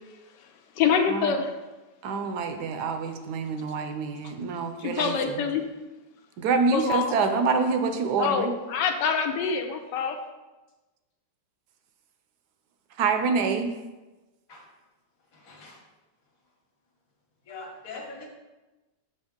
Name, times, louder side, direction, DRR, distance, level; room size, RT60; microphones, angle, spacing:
voice 1, 0.8-1.5 4.8-5.7 6.7-7.1 8.2-10.2, left 6 dB, 80° left, 5 dB, 1.2 m, -25 dB
voice 2, 2.0-5.4 6.4-8.5 13.0-13.7, right 4 dB, 70° right, 6 dB, 1.1 m, -26 dB
voice 3, 17.5-18.3, left 3 dB, 55° left, 0 dB, 1.4 m, -41 dB
6.6 x 4.4 x 3.6 m, 1.1 s
omnidirectional pair, 1.9 m